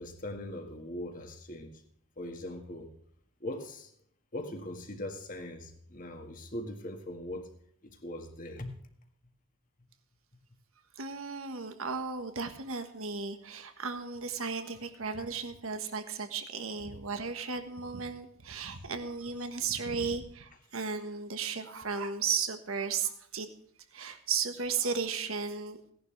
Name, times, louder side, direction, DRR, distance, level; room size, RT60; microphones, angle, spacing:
voice 1, 0.0-1.8 2.2-2.9 3.4-3.9 4.3-7.5 7.8-8.7, left 1 dB, 40° left, 4 dB, 1.8 m, -40 dB
voice 2, 10.9-23.5 23.9-25.8, right 5 dB, 75° right, 8 dB, 1.4 m, -35 dB
17.5 x 11.0 x 3.3 m, 0.66 s
head